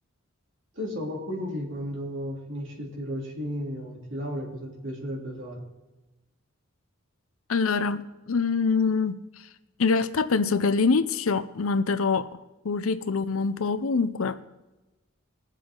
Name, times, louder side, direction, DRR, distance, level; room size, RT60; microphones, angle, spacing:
voice 1, 0.8-5.6, equal, 60° right, -2 dB, 3.2 m, -34 dB
voice 2, 7.5-9.2 9.8-12.4 12.6-14.4, left 4 dB, 75° left, 12 dB, 0.7 m, -25 dB
22.0 x 7.6 x 3.8 m, 1.1 s
head